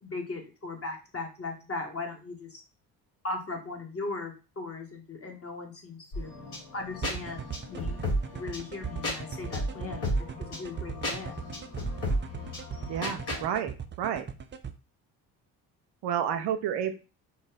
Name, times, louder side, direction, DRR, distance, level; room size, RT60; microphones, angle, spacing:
voice 1, 0.0-2.6 3.2-6.3 6.7-8.0 8.3-11.4, left 3 dB, 30° left, 2 dB, 1.4 m, -38 dB
sound 1, 6.1-13.4, equal, 60° left, 1.9 m, -34 dB
sound 2, 7.0-14.7, right 7 dB, 25° right, 0.5 m, -39 dB
voice 2, 12.9-13.7 14.0-14.2 16.0-16.9, right 9 dB, 65° right, 8 dB, 0.6 m, -30 dB
4.1 x 2.1 x 4.1 m, 0.32 s
hypercardioid pair, 50°, 44 cm